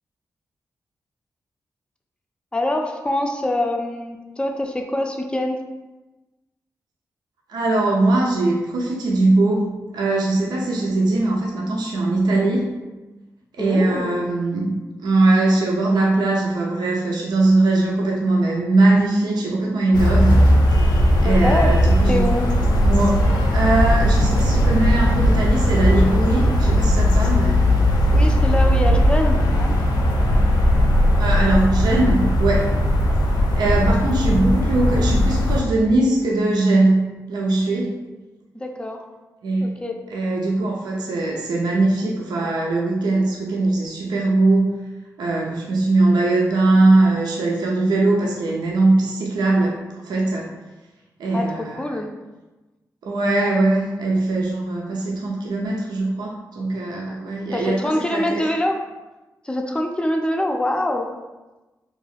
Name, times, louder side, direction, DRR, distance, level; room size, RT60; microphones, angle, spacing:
voice 1, 2.5-5.6 13.6-14.3 21.2-21.7 22.1-22.5 28.1-29.7 38.5-39.0 39.6-40.0 51.3-51.5 51.8-52.1 57.5-58.8 59.4-61.1, left 1 dB, 15° left, 3 dB, 0.4 m, -24 dB
voice 2, 7.5-12.7 13.5-20.4 20.9-22.3 22.8-23.2 23.5-27.6 31.2-32.7 33.6-38.0 39.4-39.8 40.1-44.7 45.2-49.8 50.0-50.5 51.2-51.8 53.0-58.5, right 2 dB, 80° right, -2 dB, 0.4 m, -20 dB
sound 1, 19.9-35.6, equal, 80° left, 0.4 m, -17 dB
2.3 x 2.3 x 3.3 m, 1.1 s
supercardioid pair, 45°, 7 cm